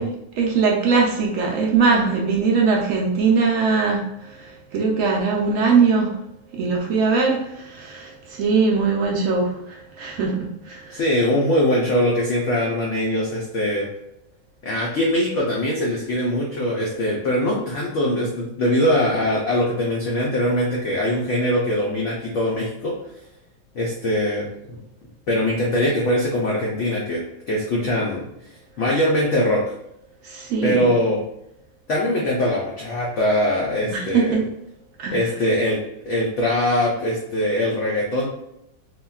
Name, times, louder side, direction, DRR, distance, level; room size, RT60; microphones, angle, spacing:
voice 1, 0.0-6.2 6.5-11.0 30.2-30.9 33.9-34.4 35.0-35.3, right 4 dB, 75° right, -1 dB, 0.7 m, -21 dB
voice 2, 10.9-13.9 14.6-22.9 23.7-24.8 25.3-28.2 28.8-29.6 30.6-31.2 31.9-34.4 35.1-35.8 36.1-38.3, left 1 dB, 80° left, -3 dB, 0.6 m, -22 dB
3.5 x 2.2 x 2.3 m, 0.81 s
omnidirectional pair, 1.9 m